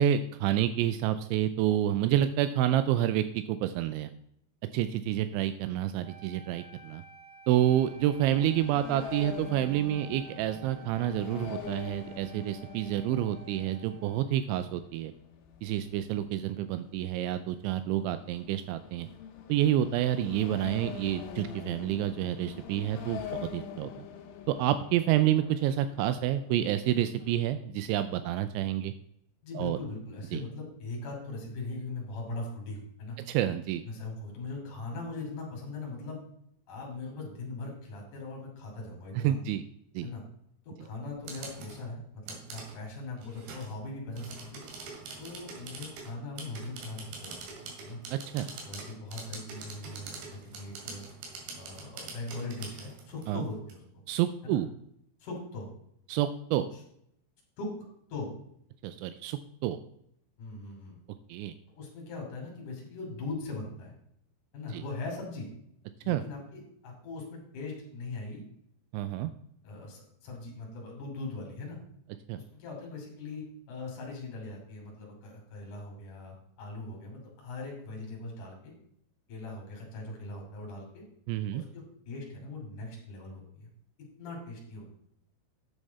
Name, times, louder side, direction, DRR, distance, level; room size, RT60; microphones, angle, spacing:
voice 1, 0.0-4.1 4.7-7.0 7.5-15.1 15.6-19.1 19.5-23.9 24.5-28.9 29.6-29.8 30.3-30.4 33.3-33.8 39.1-39.6 39.9-40.1 48.1-48.5 53.3-53.5 54.1-54.7 56.1-56.7 58.8-59.8 61.3-61.5 64.7-64.8 66.1-66.2 68.9-69.3 72.3-72.4 81.3-81.6, right 12 dB, 90° right, 12 dB, 2.6 m, -28 dB
Wind instrument woodwind instrument, 6.0-14.3, right 6 dB, 40° right, 3.6 m, -52 dB
sound 1, 7.7-27.5, left 7 dB, 85° left, 3.7 m, -45 dB
voice 2, 29.4-33.2 33.8-36.2 36.7-39.4 40.0-40.2 40.6-44.6 45.2-48.0 48.6-51.0 51.5-53.8 54.4-54.6 55.2-55.7 56.7-56.8 57.6-57.7 58.1-58.3 60.4-61.0 61.8-63.9 64.5-65.5 66.0-68.4 69.6-71.8 72.4-78.7 79.3-81.0 81.5-83.7 84.2-84.9, left 3 dB, 45° left, 0 dB, 3.9 m, -40 dB
sound 2, 41.0-41.8 42.3-42.8 43.2-43.8 44.2-53.7, right 4 dB, 65° right, 3.9 m, -44 dB
10.0 x 7.3 x 4.1 m, 0.73 s
omnidirectional pair, 5.8 m